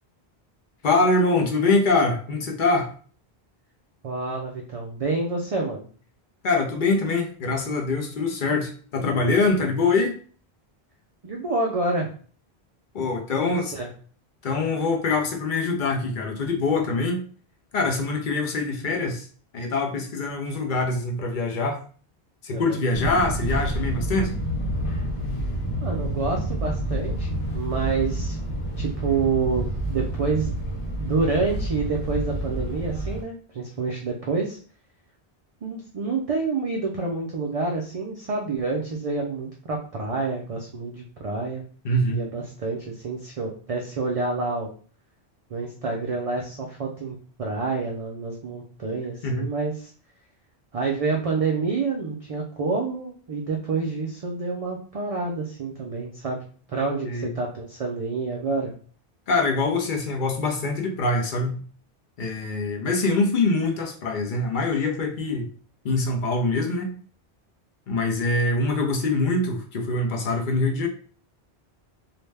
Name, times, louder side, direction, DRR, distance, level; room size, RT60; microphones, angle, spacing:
voice 1, 0.8-2.9 6.4-10.1 12.9-13.7 14.4-17.2 17.7-19.3 19.5-21.8 22.4-24.3 41.8-42.2 49.2-49.4 57.0-57.3 59.3-61.6 62.2-65.5 65.8-66.9 67.9-70.9, left 3 dB, 55° left, 2 dB, 0.7 m, -24 dB
voice 2, 4.0-5.9 11.2-12.1 13.5-13.9 22.5-22.8 25.8-27.3 27.5-28.4 28.8-30.5 31.0-34.6 35.6-41.6 42.1-44.7 45.5-49.9 50.7-58.7, right 4 dB, 55° right, 0 dB, 0.4 m, -28 dB
Fixed-wing aircraft airplane, 22.9-33.2, right 1 dB, 75° left, 1.4 m, -28 dB
2.5 x 2.1 x 3.2 m, 0.43 s
omnidirectional pair, 1.1 m